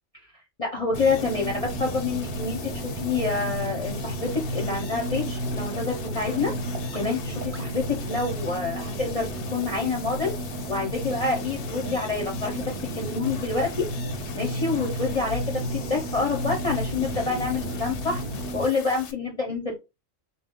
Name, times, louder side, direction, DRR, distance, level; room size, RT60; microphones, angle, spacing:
voice 1, 0.6-6.5 6.9-10.3 10.7-13.9 14.3-18.2 18.5-19.7, left 4 dB, 35° left, 0 dB, 0.6 m, -27 dB
sound 1, 0.9-19.1, left 8 dB, 65° left, 0.8 m, -43 dB
sound 2, 0.9-1.0 1.5-1.6 2.1-2.2 2.7-2.8 3.3-3.4 3.9-4.0 4.5-4.6 5.1-5.2 5.7-5.8 6.3-6.4 6.9-7.0 7.5-7.6, equal, 15° right, 0.5 m, -46 dB
sound 3, 0.9-18.7, right 1 dB, 55° right, 0.9 m, -32 dB
3.6 x 2.3 x 3.5 m, 0.25 s
omnidirectional pair, 1.4 m